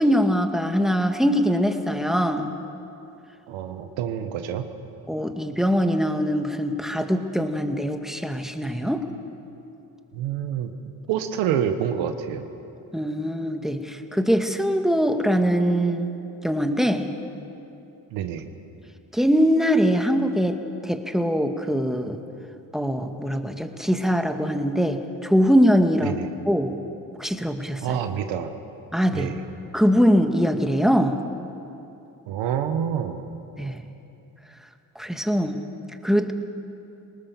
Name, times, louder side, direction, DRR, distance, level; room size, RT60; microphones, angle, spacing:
voice 1, 0.0-2.5 5.1-9.1 12.9-16.1 16.4-17.1 19.1-22.2 22.7-26.2 26.5-26.7 27.2-28.0 28.9-29.3 29.7-31.2 33.6-33.9 35.0-35.6 36.0-36.3, equal, ahead, 6 dB, 2.1 m, -22 dB
voice 2, 3.5-4.7 10.1-10.7 11.1-12.5 18.1-18.5 26.0-26.3 27.8-28.5 29.1-29.3 32.3-33.2, right 9 dB, 85° right, 8 dB, 1.2 m, -27 dB
23.5 x 19.0 x 7.0 m, 2.8 s
supercardioid pair, 45°, 45 cm